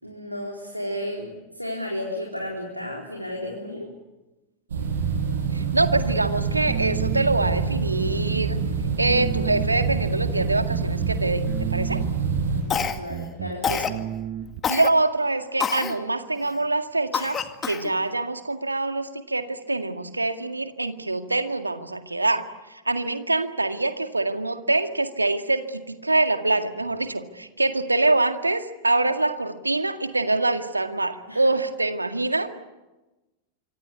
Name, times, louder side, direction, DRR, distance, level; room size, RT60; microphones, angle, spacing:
voice 1, 0.0-3.9 12.6-13.9 31.3-31.5, left 1 dB, 90° left, 0 dB, 4.1 m, -33 dB
sound 1, 4.7-12.6, right 5 dB, 65° right, 7.8 m, -27 dB
sound 2, 5.0-14.6, right 10 dB, 45° right, 1.6 m, -33 dB
voice 2, 5.5-8.6 9.0-12.0 13.7-13.8 14.7-32.5, right 2 dB, 80° right, 8 dB, 2.0 m, -25 dB
Cough, 12.7-13.2 13.6-14.0 14.6-14.9 15.6-16.0 16.5-16.6 17.1-17.9, left 7 dB, 25° left, 2.1 m, -27 dB
26.0 x 25.0 x 8.3 m, 1.1 s
figure-of-eight pair, 90°, 0 cm